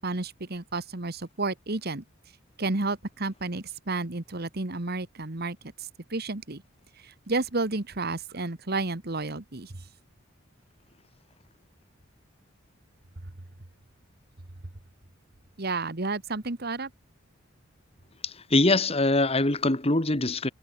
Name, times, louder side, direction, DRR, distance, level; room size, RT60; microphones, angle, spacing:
voice 1, 0.0-2.0 2.6-6.6 7.0-9.9 15.6-16.9, right 3 dB, 50° right, 1.6 m, -31 dB
voice 2, 18.2-20.5, left 2 dB, 30° left, 2.1 m, -23 dB
head